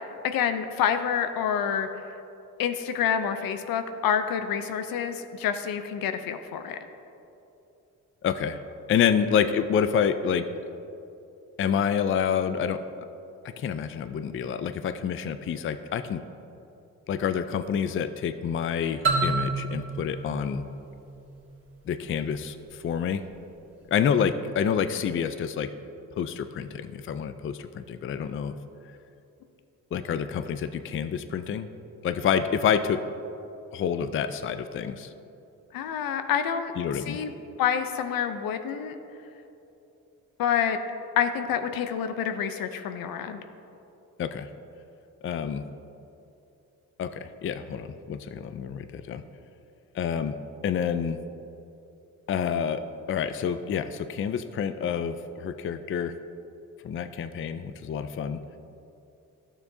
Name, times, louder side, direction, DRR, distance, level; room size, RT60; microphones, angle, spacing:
voice 1, 0.2-1.9 2.6-6.8 35.7-36.7 37.1-37.3 37.6-39.0 40.4-40.8 41.2-43.4, left 8 dB, 75° left, 8 dB, 0.7 m, -27 dB
voice 2, 8.2-8.6 8.9-10.5 11.6-12.8 13.6-16.2 17.1-20.6 21.9-23.3 23.9-25.7 26.2-28.5 29.9-31.7 32.0-33.0 33.7-35.1 36.8-37.2 44.2-44.5 45.2-45.6 47.0-49.2 49.9-50.4 50.6-51.2 52.3-52.8 53.1-56.2 56.8-58.4, left 7 dB, 35° left, 10 dB, 0.4 m, -28 dB
sound 1, 19.0-21.7, right 3 dB, 35° right, 1.8 m, -29 dB
12.0 x 7.0 x 2.7 m, 2.8 s
supercardioid pair, 60°, 35 cm